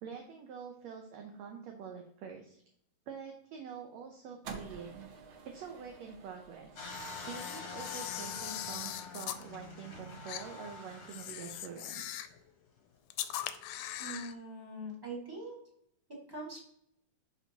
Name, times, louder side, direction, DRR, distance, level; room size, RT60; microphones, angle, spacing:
voice 1, 0.0-2.6 3.1-5.1 5.4-6.8 7.2-12.2, right 6 dB, 75° right, 3 dB, 1.7 m, -46 dB
sound 1, 4.4-10.8, right 5 dB, 90° right, 1.1 m, -52 dB
sound 2, 6.8-11.8 12.4-12.5, left 4 dB, 50° left, 1.3 m, -45 dB
Camera, 6.9-9.4 10.3-10.4 11.1-12.4 13.1-14.3, left 12 dB, 80° left, 1.9 m, -41 dB
voice 2, 14.0-15.6 16.3-16.7, right 1 dB, 15° right, -4 dB, 0.8 m, -42 dB
10.5 x 4.3 x 2.8 m, 0.71 s
omnidirectional pair, 3.7 m